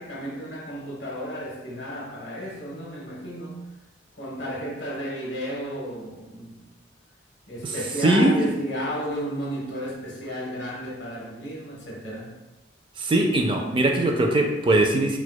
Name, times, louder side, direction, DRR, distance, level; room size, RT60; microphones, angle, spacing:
voice 1, 0.0-3.6 4.2-6.6 7.5-12.3, equal, 70° left, -4 dB, 1.0 m, -33 dB
voice 2, 8.0-8.3 13.0-15.2, right 1 dB, 25° right, 3 dB, 0.3 m, -21 dB
4.5 x 2.2 x 2.2 m, 1.1 s
head